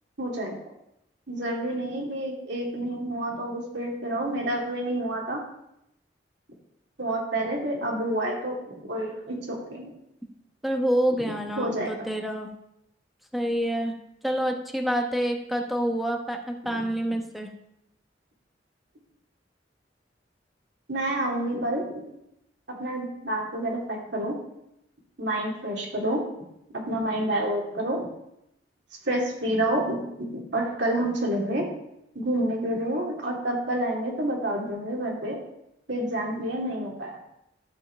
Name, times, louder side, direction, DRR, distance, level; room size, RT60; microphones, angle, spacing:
voice 1, 0.2-0.6 1.3-5.4 7.0-9.9 11.6-11.9 16.7-16.9 20.9-22.0 22.8-24.4 25.2-26.2 26.7-28.1 29.1-31.7 32.1-35.4 35.9-37.2, right 1 dB, 80° right, -2 dB, 2.5 m, -28 dB
voice 2, 10.6-12.5 13.3-14.0 14.2-17.5, equal, ahead, 2 dB, 1.0 m, -27 dB
12.5 x 5.6 x 4.4 m, 0.81 s
head